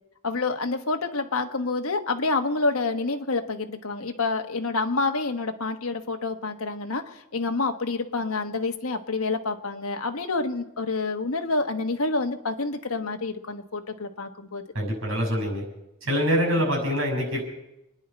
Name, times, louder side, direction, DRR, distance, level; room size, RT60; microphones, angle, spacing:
voice 1, 0.2-14.6, left 3 dB, 80° left, 5 dB, 1.3 m, -28 dB
voice 2, 14.7-15.6 16.0-17.4, equal, 65° right, 1 dB, 6.3 m, -25 dB
28.0 x 10.5 x 4.4 m, 0.88 s
head